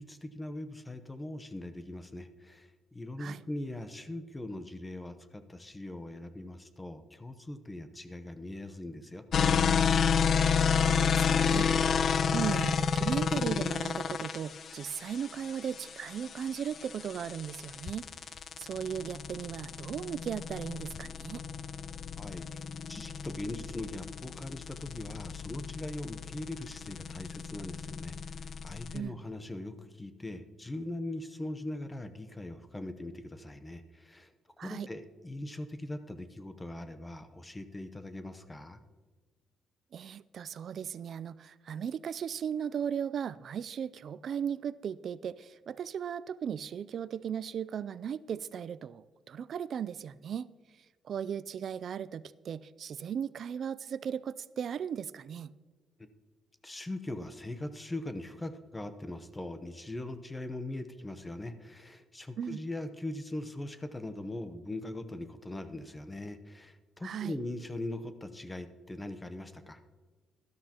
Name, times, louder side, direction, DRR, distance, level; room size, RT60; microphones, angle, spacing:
voice 1, 0.0-9.2 22.2-22.6 22.9-34.3 34.6-38.8 56.0-56.1 56.6-69.8, left 1 dB, 15° left, 10 dB, 0.8 m, -41 dB
sound 1, 9.3-29.0, left 6 dB, 55° left, 0.4 m, -30 dB
voice 2, 10.4-21.4 28.9-29.2 34.6-34.9 39.9-50.5 51.0-55.5 62.4-62.6 67.0-67.4, right 8 dB, 60° right, 17 dB, 0.4 m, -37 dB
13.0 x 12.5 x 2.9 m, 1.3 s
cardioid pair, 90°, 0 cm